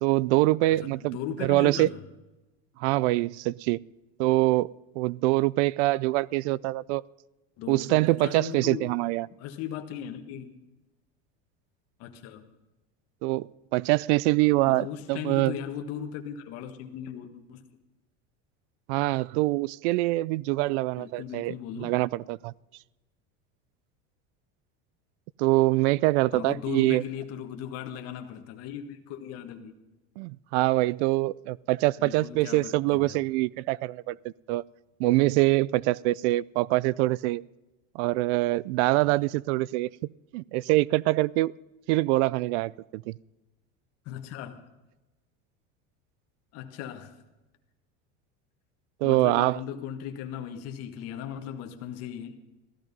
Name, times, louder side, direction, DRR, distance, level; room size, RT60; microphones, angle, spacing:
voice 1, 0.0-1.9 2.8-3.8 4.2-7.0 7.7-9.3 13.2-15.6 18.9-22.5 25.4-27.0 30.2-34.6 35.0-37.4 37.9-39.9 40.3-41.5 41.9-43.2 49.0-49.6, right 19 dB, 85° right, 25 dB, 0.5 m, -24 dB
voice 2, 0.8-2.0 7.6-8.9 9.4-10.5 12.0-12.5 14.7-17.6 21.0-22.0 26.3-29.7 32.0-33.2 44.0-44.6 46.5-47.1 49.0-52.3, left 9 dB, 50° left, 5 dB, 1.6 m, -38 dB
15.5 x 13.5 x 5.4 m, 1.1 s
cardioid pair, 165°, 33 cm